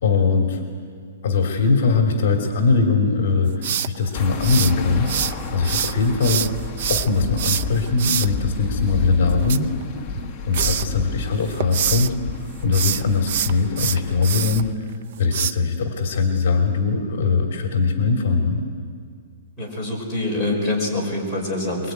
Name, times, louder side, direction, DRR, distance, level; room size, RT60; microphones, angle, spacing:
voice 1, 0.0-0.6 1.2-6.4 6.9-9.7 10.5-12.1 12.6-14.9 15.2-18.6, left 4 dB, 45° left, 2 dB, 2.9 m, -21 dB
sound 1, 3.6-5.3 5.6-8.3 9.3-10.2 10.5-10.9 11.3-12.1 12.6-14.6 15.3-15.5, right 9 dB, 45° right, 0.6 m, -25 dB
sound 2, 4.1-14.7, left 4 dB, 15° left, 1.2 m, -31 dB
voice 2, 19.6-21.9, left 2 dB, 5° right, -5 dB, 5.7 m, -25 dB
23.5 x 22.5 x 9.4 m, 2.1 s
hypercardioid pair, 175°, 0 cm